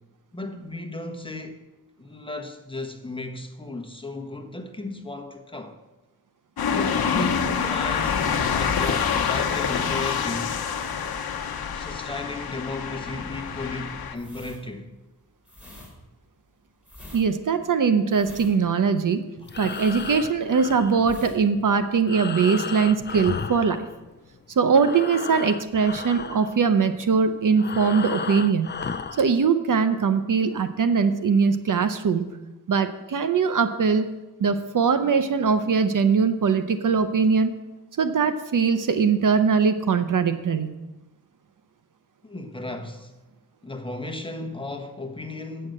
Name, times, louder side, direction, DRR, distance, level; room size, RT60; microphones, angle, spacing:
voice 1, 0.3-1.6 2.0-5.8 6.7-10.5 11.7-14.9 19.4-19.5 42.2-43.1 43.6-45.7, left 2 dB, 15° left, 1.1 m, -35 dB
sound 1, 6.6-14.1, left 7 dB, 75° left, 0.9 m, -26 dB
sound 2, 14.1-20.7 21.0-21.4 21.7-21.9, left 1 dB, 5° right, 3.3 m, -46 dB
voice 2, 17.1-19.2 19.6-23.9 24.6-28.8 29.2-32.4 32.7-34.1 34.4-37.5 38.0-40.7, right 5 dB, 55° right, 0.7 m, -21 dB
Breathing, 19.4-24.4 24.6-29.3, left 5 dB, 30° left, 0.5 m, -35 dB
8.6 x 6.7 x 7.7 m
wide cardioid pair, 95°, 37 cm